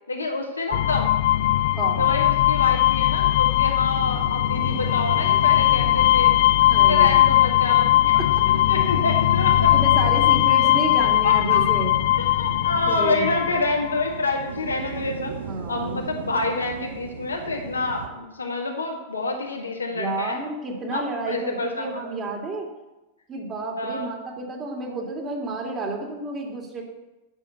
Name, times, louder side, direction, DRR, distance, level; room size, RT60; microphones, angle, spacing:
voice 1, 0.1-1.2 2.0-6.3 6.7-8.1 8.7-9.7 10.6-11.6 12.2-15.3 15.7-20.4 20.9-21.9 23.8-24.1, left 2 dB, 75° left, 2 dB, 1.6 m, -28 dB
sound 1, 0.7-14.1, left 14 dB, 55° left, 0.3 m, -19 dB
sound 2, 1.2-18.1, right 7 dB, 65° right, 1.0 m, -38 dB
voice 2, 1.8-2.3 6.7-7.3 8.1-8.4 9.7-12.0 12.4-12.5 12.8-13.6 15.5-16.1 19.9-22.7 23.3-26.8, right 2 dB, 25° right, 1 dB, 2.6 m, -31 dB
9.1 x 6.5 x 8.0 m, 1.0 s
figure-of-eight pair, 90°, 0 cm